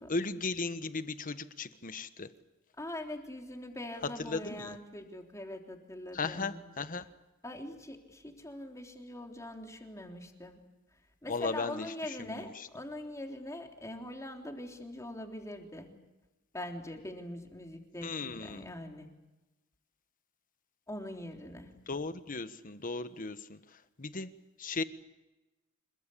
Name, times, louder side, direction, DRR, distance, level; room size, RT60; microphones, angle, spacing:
voice 1, 0.1-2.3 4.3-4.8 6.1-7.0 11.3-11.9 12.2-12.7 18.0-18.7 21.9-23.6 24.0-24.3 24.6-24.8, left 3 dB, 40° left, 11 dB, 1.3 m, -36 dB
voice 2, 2.8-6.6 7.4-10.6 11.2-15.9 16.5-19.1 20.9-21.7, left 1 dB, 15° left, 2 dB, 3.5 m, -43 dB
27.0 x 21.0 x 8.6 m, 1.1 s
head